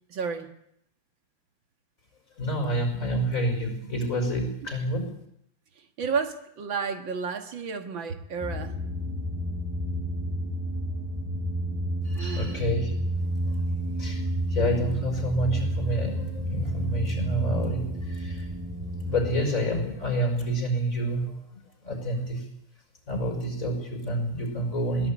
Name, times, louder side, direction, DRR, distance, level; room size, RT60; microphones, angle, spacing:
voice 1, 0.1-0.5 6.0-8.8 12.2-12.8, right 5 dB, 80° right, 7 dB, 2.5 m, -32 dB
voice 2, 2.4-5.1 12.0-12.9 14.0-14.2 14.5-18.5 19.0-21.3 21.8-22.4 23.1-25.1, equal, 40° left, 4 dB, 5.9 m, -28 dB
sound 1, 8.4-19.4, right 1 dB, 5° right, 4.0 m, -30 dB
21.5 x 18.0 x 8.7 m, 0.75 s
omnidirectional pair, 2.1 m